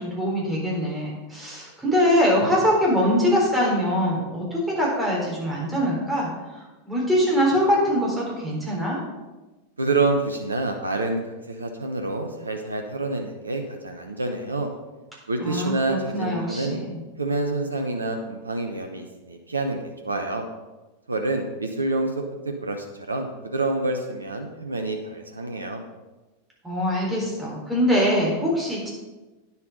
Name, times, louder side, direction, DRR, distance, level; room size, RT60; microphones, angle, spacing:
voice 1, 0.0-9.0 15.4-16.9 26.6-28.9, equal, 5° right, -4 dB, 3.9 m, -23 dB
voice 2, 9.8-14.7 15.3-16.8 17.2-20.5 21.1-25.8, right 2 dB, 80° right, 4 dB, 0.9 m, -27 dB
9.7 x 6.9 x 5.4 m, 1.1 s
figure-of-eight pair, 90°, 0 cm